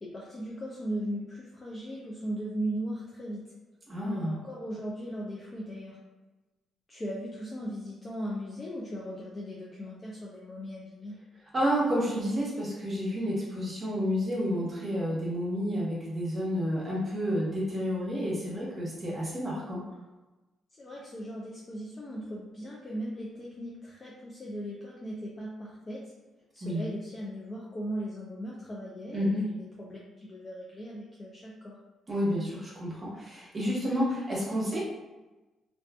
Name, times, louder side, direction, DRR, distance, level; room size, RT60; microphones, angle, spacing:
voice 1, 0.0-3.4 4.0-6.0 6.9-11.2 20.8-26.1 26.5-29.5 29.8-31.8, equal, 30° left, -4 dB, 0.4 m, -38 dB
voice 2, 3.9-4.3 11.5-19.8 26.6-26.8 29.1-29.4 32.1-34.8, equal, 30° right, -5 dB, 0.9 m, -30 dB
2.5 x 2.4 x 2.3 m, 1.1 s
cardioid pair, 90°, 0 cm